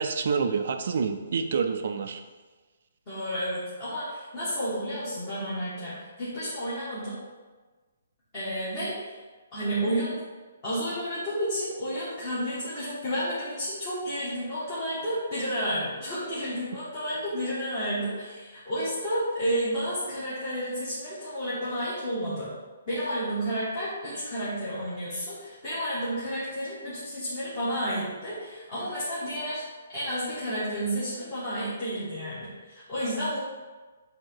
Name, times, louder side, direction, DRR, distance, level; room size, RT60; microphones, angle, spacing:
voice 1, 0.0-2.2, right 5 dB, 40° right, 7 dB, 0.4 m, -27 dB
voice 2, 3.1-7.2 8.3-9.2 9.5-10.2 10.6-22.5 22.9-29.6 29.9-33.4, equal, 20° left, -12 dB, 1.4 m, -31 dB
7.4 x 2.8 x 4.5 m, 1.3 s
hypercardioid pair, 180°, 0 cm